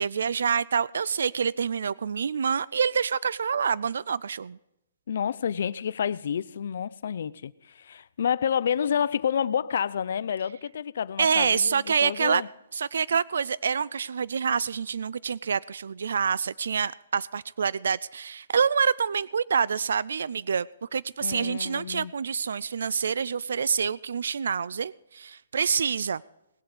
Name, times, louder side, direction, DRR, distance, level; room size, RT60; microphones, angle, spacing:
voice 1, 0.0-4.6 11.2-12.4 12.7-20.7 20.9-26.2, right 6 dB, 70° right, 0.4 m, -27 dB
voice 2, 5.1-12.5 21.2-22.1, left 8 dB, 55° left, 0.6 m, -29 dB
19.5 x 7.9 x 5.1 m
hypercardioid pair, 170°, 0 cm